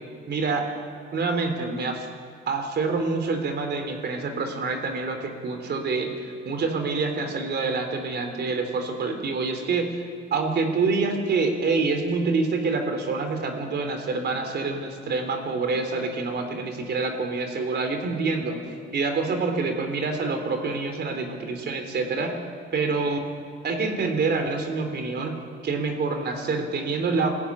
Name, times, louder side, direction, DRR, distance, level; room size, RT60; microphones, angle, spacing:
voice 1, 0.3-0.7 1.1-2.1 2.5-6.1 6.5-10.0 10.3-18.6 18.9-22.3 22.7-23.2 23.6-25.3 25.6-27.4, right 4 dB, 60° right, 5 dB, 3.5 m, -26 dB
20.5 x 14.5 x 9.8 m, 2.1 s
cardioid pair, 90°, 20 cm